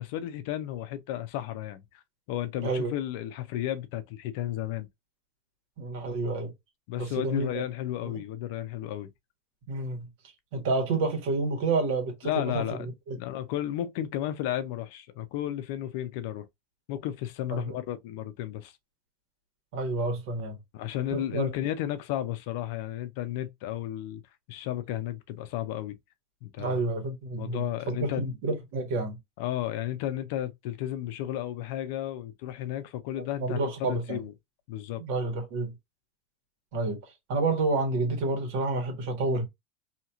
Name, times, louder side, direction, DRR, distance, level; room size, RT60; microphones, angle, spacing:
voice 1, 0.0-2.0 2.3-4.9 6.9-9.1 12.2-16.5 16.9-18.7 20.7-24.2 24.5-26.0 26.4-26.8 27.4-28.3 29.4-34.3 34.7-35.0, left 12 dB, 65° left, 0.4 m, -33 dB
voice 2, 5.8-6.5 7.0-7.6 9.7-10.1 10.5-13.2 17.5-17.7 19.7-20.6 21.1-21.5 26.6-29.2 33.4-34.2 35.0-35.7 36.7-37.0 37.3-39.4, right 3 dB, 65° right, 1.5 m, -29 dB
2.9 x 2.8 x 2.3 m
supercardioid pair, 155°, 0 cm